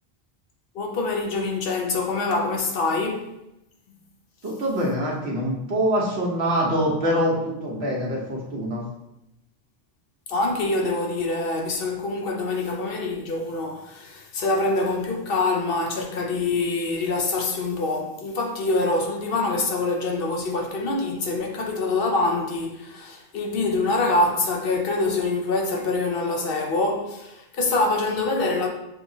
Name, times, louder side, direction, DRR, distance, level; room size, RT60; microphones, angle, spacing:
voice 1, 0.7-3.3 10.3-28.7, left 3 dB, 65° left, 0.9 m, -25 dB
voice 2, 4.4-8.9, equal, 85° right, 1.3 m, -24 dB
6.2 x 2.9 x 2.7 m
omnidirectional pair, 1.0 m